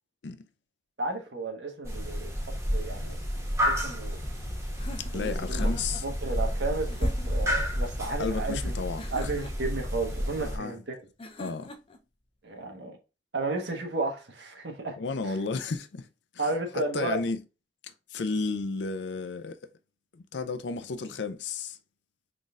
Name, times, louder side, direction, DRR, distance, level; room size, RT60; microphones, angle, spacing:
voice 1, 1.0-2.3 2.7-3.2 3.6-4.2 5.1-5.7 6.0-8.7 9.1-11.0 12.4-13.0 13.3-15.0 15.2-15.4 16.4-17.2, right 3 dB, 80° right, 1.2 m, -33 dB
sound 1, 1.8-10.6, equal, 15° right, 1.3 m, -30 dB
sound 2, 4.8-6.1 6.9-7.5 9.0-9.8 11.2-12.0, left 1 dB, 30° left, 0.6 m, -43 dB
voice 2, 5.0-6.0 8.2-9.3 10.4-10.8 11.4-11.7 15.0-16.1 16.3-16.5 16.9-17.4 17.8-19.6 20.1-21.8, left 4 dB, 80° left, 0.5 m, -33 dB
4.0 x 3.8 x 2.4 m
head